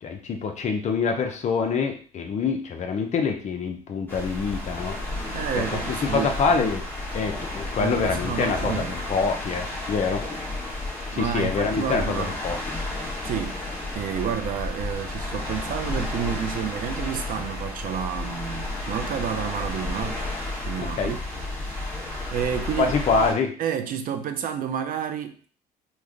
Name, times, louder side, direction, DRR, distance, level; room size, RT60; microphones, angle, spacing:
voice 1, 0.0-5.0 5.6-5.7 6.1-6.8 7.1-10.2 11.1-12.6 20.8-21.1 22.8-23.6, left 5 dB, 45° left, 0.6 m, -25 dB
sound 1, 4.1-23.3, left 2 dB, 10° left, 1.2 m, -32 dB
voice 2, 5.3-6.8 7.8-9.0 10.9-12.4 13.2-13.6 13.9-20.2 20.6-21.2 22.3-22.9 23.6-25.5, right 8 dB, 55° right, 0.4 m, -30 dB
3.1 x 2.1 x 3.7 m
cardioid pair, 110°, 17 cm